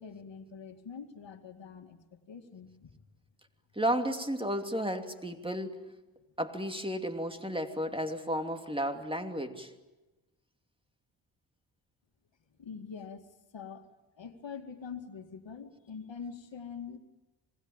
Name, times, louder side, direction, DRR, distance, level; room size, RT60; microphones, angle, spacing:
voice 1, 0.0-3.1 12.6-13.9 14.2-17.0, left 6 dB, 60° left, 6 dB, 2.4 m, -45 dB
voice 2, 3.8-5.8 6.4-9.7, equal, 10° right, 6 dB, 2.8 m, -33 dB
26.0 x 20.5 x 9.1 m, 1.1 s
supercardioid pair, 50°, 48 cm